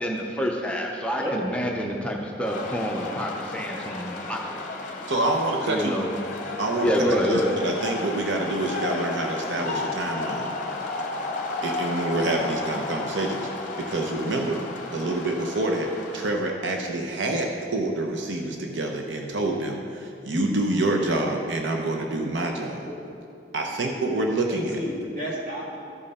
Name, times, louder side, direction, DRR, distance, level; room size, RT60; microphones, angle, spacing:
voice 1, 0.0-4.8 5.7-6.1 6.8-7.6, equal, 5° left, -1 dB, 0.6 m, -27 dB
sound 1, 2.4-16.3, left 2 dB, 45° left, 0.8 m, -33 dB
voice 2, 5.1-5.9 6.6-10.5 11.6-13.5 13.8-14.6 14.9-22.9 23.5-24.7, right 2 dB, 85° right, 2 dB, 0.8 m, -27 dB
voice 3, 24.5-25.8, equal, 45° right, -5 dB, 2.2 m, -32 dB
14.0 x 5.4 x 4.2 m, 2.5 s
head